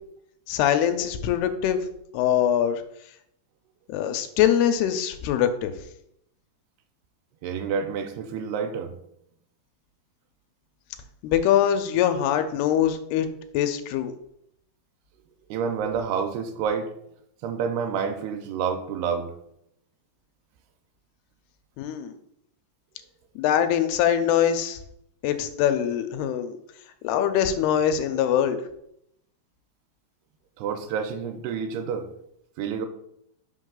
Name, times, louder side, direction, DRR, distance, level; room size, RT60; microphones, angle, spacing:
voice 1, 0.5-1.8 2.1-2.8 3.9-5.7 11.2-13.3 13.5-14.1 21.8-22.1 23.4-24.8 25.2-26.5 27.0-28.6, left 10 dB, 90° left, 8 dB, 2.6 m, -23 dB
voice 2, 7.4-8.9 15.5-16.9 17.4-19.3 30.6-32.1 32.6-32.9, right 6 dB, 85° right, 7 dB, 2.6 m, -28 dB
5.9 x 5.3 x 3.8 m, 0.75 s
omnidirectional pair, 4.5 m